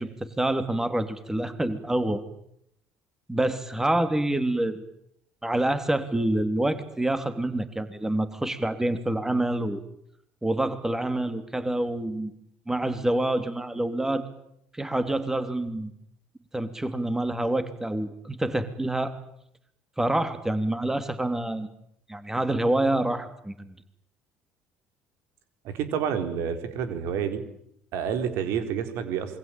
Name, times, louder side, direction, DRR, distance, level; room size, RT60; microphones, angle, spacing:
voice 1, 0.0-2.2 3.3-4.8 5.4-9.8 10.4-12.3 12.7-14.2 14.7-15.9 16.5-19.1 20.0-21.7 22.1-23.7, right 1 dB, 10° right, 10 dB, 3.1 m, -27 dB
voice 2, 25.6-27.4 27.9-29.4, right 8 dB, 70° right, 9 dB, 4.3 m, -29 dB
27.5 x 23.0 x 9.0 m, 0.75 s
hypercardioid pair, 70°, 5 cm